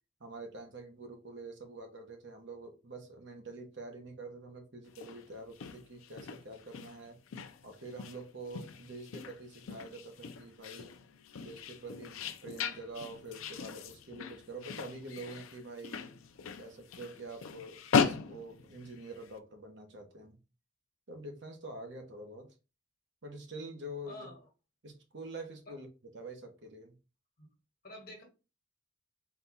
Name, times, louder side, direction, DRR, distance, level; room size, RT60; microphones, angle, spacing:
voice 1, 0.2-7.2 7.6-10.9 11.4-16.1 16.6-20.4 21.1-22.5 23.2-24.3 24.8-26.9, right 2 dB, 60° right, 1.0 m, -46 dB
sound 1, 4.9-19.3, left 6 dB, 90° left, 0.5 m, -38 dB
voice 2, 24.1-24.5 25.7-25.8 27.4-27.5 27.8-28.2, left 1 dB, 45° left, 1.4 m, -48 dB
4.0 x 2.3 x 4.0 m
head